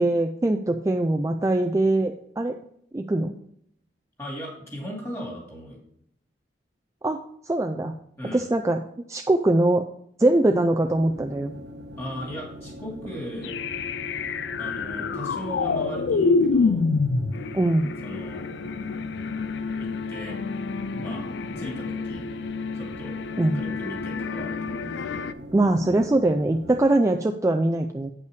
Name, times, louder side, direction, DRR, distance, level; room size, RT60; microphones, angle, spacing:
voice 1, 0.0-2.6 2.9-3.3 7.0-7.9 8.3-8.8 9.1-9.8 10.2-11.5 17.5-17.9 23.4-23.6 25.5-28.1, right 2 dB, 15° right, 4 dB, 0.3 m, -22 dB
voice 2, 4.2-5.8 8.2-8.5 12.0-13.5 14.6-16.9 18.0-18.5 19.8-20.4 21.0-21.3 21.6-22.2 22.7-23.2 23.5-25.3, equal, 15° left, -1 dB, 2.4 m, -37 dB
sound 1, 10.9-26.9, equal, 75° right, 1.2 m, -42 dB
sound 2, 13.4-25.3, left 4 dB, 75° left, 0.4 m, -28 dB
8.4 x 5.5 x 4.7 m, 0.71 s
head